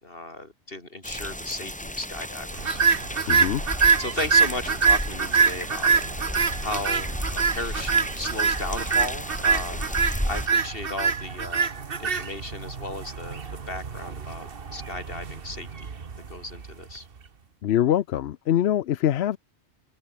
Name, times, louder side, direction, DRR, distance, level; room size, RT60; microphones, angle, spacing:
voice 1, 0.0-2.8 4.0-5.9 6.6-7.1 7.5-11.7 12.0-13.4 13.7-15.9 16.3-17.1, left 2 dB, 55° left, 4.4 m, -35 dB
sound 1, 1.0-10.5, equal, 5° left, 2.8 m, -33 dB
sound 2, 2.6-16.9, right 5 dB, 55° right, 1.5 m, -25 dB
voice 2, 3.3-3.6 17.6-19.4, left 11 dB, 70° left, 0.9 m, -23 dB
omnidirectional pair, 1.1 m